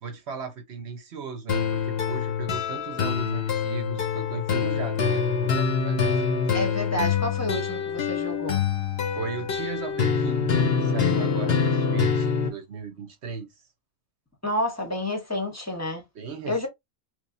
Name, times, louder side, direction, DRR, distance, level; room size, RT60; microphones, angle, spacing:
voice 1, 0.0-6.3 9.1-13.5 16.1-16.7, right 5 dB, 55° right, 1.2 m, -36 dB
sound 1, 1.5-12.5, left 6 dB, 55° left, 0.9 m, -25 dB
voice 2, 6.5-8.6 14.4-16.0 16.5-16.7, left 1 dB, 15° left, 0.9 m, -29 dB
3.3 x 3.2 x 2.6 m
omnidirectional pair, 1.4 m